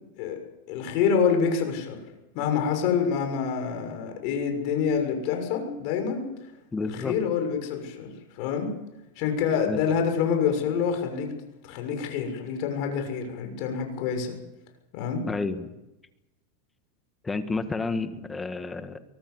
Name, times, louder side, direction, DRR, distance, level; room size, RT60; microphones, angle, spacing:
voice 1, 0.7-2.0 2.3-6.3 6.8-8.7 9.2-11.3 11.6-14.3 14.9-15.2, left 6 dB, 55° left, 4 dB, 6.5 m, -27 dB
voice 2, 6.7-7.2 9.7-9.8 15.2-15.7 17.2-19.0, left 3 dB, 15° left, 9 dB, 1.7 m, -30 dB
23.5 x 18.5 x 8.0 m, 0.97 s
supercardioid pair, 135°, 0 cm